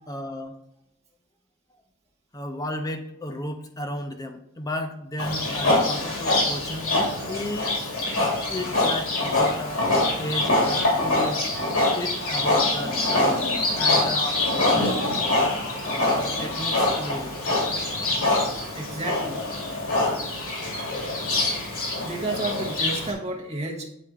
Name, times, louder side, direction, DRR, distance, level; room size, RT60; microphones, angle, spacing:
voice 1, 0.1-0.6 2.3-7.9 8.5-9.8 10.2-11.4 11.9-13.4 13.7-14.4 15.9-17.4, left 1 dB, 15° left, 5 dB, 0.5 m, -33 dB
Livestock farm animals working animals, 5.2-23.1, left 2 dB, 70° left, 2.4 m, -24 dB
voice 2, 18.7-19.4 22.0-23.9, right 2 dB, 30° right, 0 dB, 1.1 m, -32 dB
8.4 x 4.3 x 3.7 m, 0.82 s
head